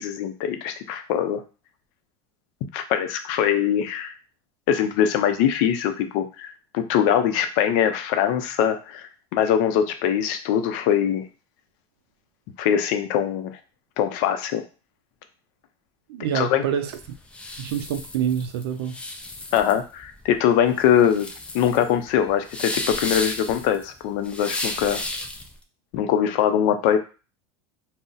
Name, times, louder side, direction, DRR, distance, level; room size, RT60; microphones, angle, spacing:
voice 1, 0.0-1.4 2.7-4.1 4.7-11.2 12.6-13.5 14.0-14.6 16.3-16.6 19.5-21.3 21.5-25.0 25.9-27.0, left 9 dB, 60° left, 8 dB, 0.5 m, -22 dB
voice 2, 16.1-17.0 17.6-19.0, right 9 dB, 85° right, 7 dB, 0.4 m, -26 dB
sound 1, 16.9-25.5, left 2 dB, 10° left, 0.4 m, -33 dB
2.4 x 2.0 x 3.9 m, 0.34 s
supercardioid pair, 130°, 13 cm